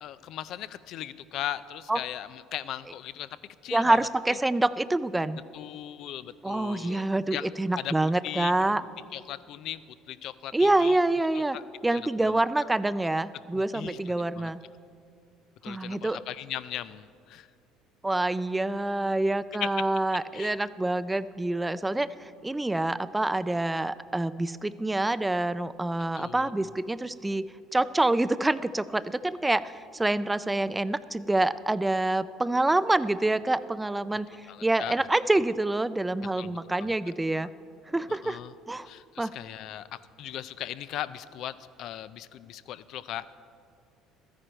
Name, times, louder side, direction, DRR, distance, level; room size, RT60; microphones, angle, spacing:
voice 1, 0.0-3.3 3.6-4.0 4.3-4.4 5.5-8.5 9.1-9.8 10.1-11.0 11.3-11.6 11.9-12.4 13.5-14.5 15.6-17.5 19.6-19.7 20.3-20.5 26.2-26.7 34.5-35.0 36.4-36.9 38.1-38.5 38.8-43.3, left 12 dB, 65° left, 15 dB, 0.4 m, -38 dB
voice 2, 3.7-5.4 6.4-8.8 10.5-11.6 11.8-14.6 15.7-16.2 18.0-34.3 34.6-37.5 37.9-38.4 38.7-38.9 39.2-39.3, right 2 dB, 10° right, 16 dB, 0.3 m, -26 dB
13.0 x 9.8 x 4.5 m, 2.4 s
supercardioid pair, 90°, 0 cm